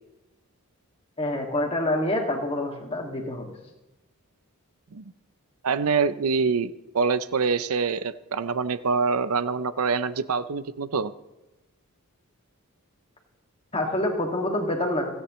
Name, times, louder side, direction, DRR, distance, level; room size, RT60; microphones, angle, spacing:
voice 1, 1.2-3.5 13.7-15.1, left 1 dB, 25° left, 1 dB, 2.2 m, -27 dB
voice 2, 5.6-11.1, right 5 dB, 75° right, 14 dB, 0.6 m, -25 dB
29.5 x 9.8 x 3.2 m, 1.1 s
head